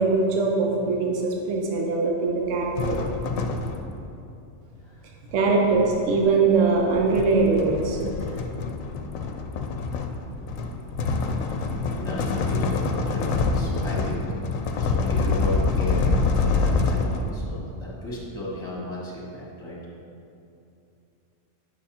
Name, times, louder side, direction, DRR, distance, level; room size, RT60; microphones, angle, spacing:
voice 1, 0.0-3.0 5.3-8.0, right 4 dB, 70° right, 0 dB, 1.0 m, -22 dB
sound 1, 2.8-4.1 5.3-17.5, left 4 dB, 80° left, 1.0 m, -26 dB
voice 2, 5.5-6.0 11.0-14.2 14.8-19.8, left 1 dB, 20° left, -6 dB, 1.5 m, -35 dB
8.1 x 6.3 x 2.8 m, 2.6 s
omnidirectional pair, 1.4 m